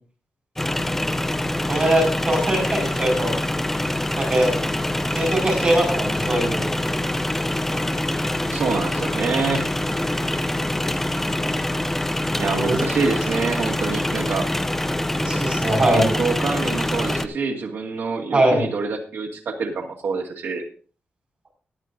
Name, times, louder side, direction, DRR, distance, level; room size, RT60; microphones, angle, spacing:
sound 1, 0.6-17.3, left 1 dB, 10° left, 0.5 m, -25 dB
voice 1, 1.7-3.3 4.1-4.6 5.1-6.7 12.2-12.9 15.2-16.1 18.3-18.6, right 1 dB, 30° right, -1 dB, 5.2 m, -21 dB
voice 2, 8.5-9.7 12.4-14.5 15.9-20.6, right 4 dB, 80° right, 0 dB, 2.1 m, -26 dB
17.5 x 11.0 x 2.6 m, 0.38 s
wide cardioid pair, 170°, 4 cm